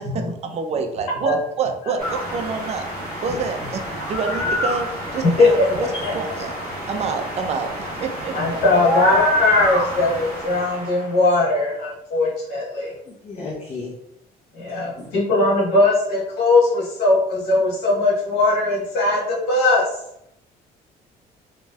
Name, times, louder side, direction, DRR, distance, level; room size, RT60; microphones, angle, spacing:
voice 1, 0.0-2.9 3.2-5.9 6.1-6.6 6.9-8.6, right 5 dB, 40° right, 6 dB, 0.5 m, -27 dB
sound 1, 2.0-11.1, equal, 65° right, 1.2 m, -27 dB
voice 2, 8.3-12.9 14.6-19.8, left 2 dB, 75° left, -5 dB, 1.5 m, -19 dB
voice 3, 13.1-13.9 14.7-15.0, left 3 dB, 40° left, -3 dB, 0.7 m, -34 dB
3.0 x 2.9 x 2.3 m, 0.77 s
cardioid pair, 110°, 17 cm